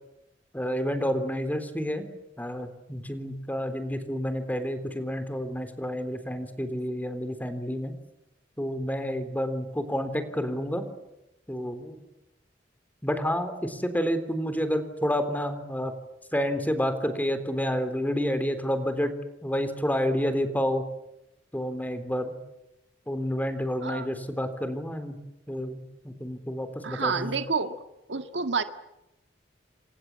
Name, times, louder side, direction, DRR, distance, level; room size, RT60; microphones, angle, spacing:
voice 1, 0.5-2.1 2.4-7.9 8.6-10.9 11.5-12.0 13.0-15.9 16.3-19.2 19.4-20.8 21.5-22.4 23.1-25.2 25.5-27.4, equal, 10° left, 10 dB, 3.7 m, -29 dB
voice 2, 26.8-27.8 28.1-28.6, right 5 dB, 65° right, 8 dB, 1.8 m, -29 dB
29.5 x 26.0 x 7.5 m, 0.93 s
head